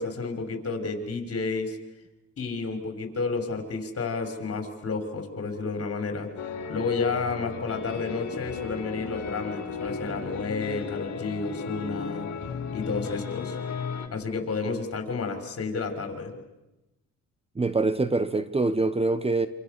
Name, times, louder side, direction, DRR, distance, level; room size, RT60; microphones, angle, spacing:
voice 1, 0.0-1.8 2.4-6.3 6.7-12.3 12.7-13.6 14.1-16.3, left 4 dB, 50° left, 6.0 m, -31 dB
sound 1, 6.4-14.1, left 6 dB, 65° left, 3.3 m, -35 dB
voice 2, 17.5-19.5, right 3 dB, 20° right, 1.4 m, -24 dB
27.0 x 27.0 x 7.0 m
cardioid pair, 90°, 30 cm